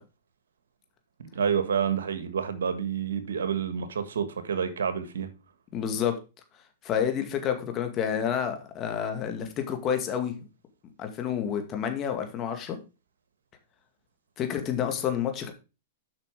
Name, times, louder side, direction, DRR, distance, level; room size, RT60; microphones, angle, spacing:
voice 1, 1.3-5.3, right 7 dB, 85° right, 1.6 m, -28 dB
voice 2, 5.7-6.2 6.8-10.3 11.0-12.8 14.4-15.5, left 8 dB, 35° left, 2.1 m, -29 dB
8.0 x 5.8 x 4.9 m
hypercardioid pair, 125°, 0 cm